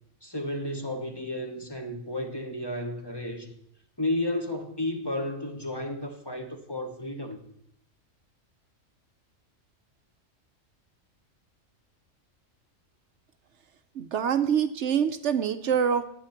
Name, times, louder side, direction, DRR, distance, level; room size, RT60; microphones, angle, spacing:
voice 1, 0.2-3.5 4.0-7.4, left 1 dB, 20° left, 4 dB, 1.1 m, -32 dB
voice 2, 14.0-16.0, right 8 dB, 65° right, 10 dB, 0.9 m, -25 dB
11.5 x 9.0 x 5.8 m, 0.72 s
omnidirectional pair, 1.4 m